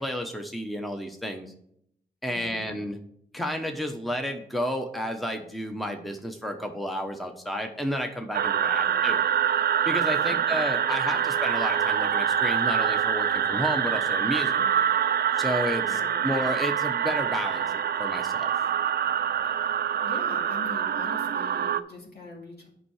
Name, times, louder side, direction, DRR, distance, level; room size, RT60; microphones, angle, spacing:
voice 1, 0.0-1.5 2.2-3.0 3.3-9.2 9.9-14.6 15.4-18.5, equal, ahead, 4 dB, 1.0 m, -31 dB
voice 2, 2.3-2.7 8.8-9.0 10.2-10.6 11.1-11.2 14.6-14.7 15.9-16.4 19.4-22.7, left 2 dB, 65° left, -1 dB, 2.5 m, -43 dB
sound 1, 8.3-21.8, right 8 dB, 60° right, 0.4 m, -25 dB
8.7 x 5.5 x 4.9 m, 0.72 s
cardioid pair, 60°, 18 cm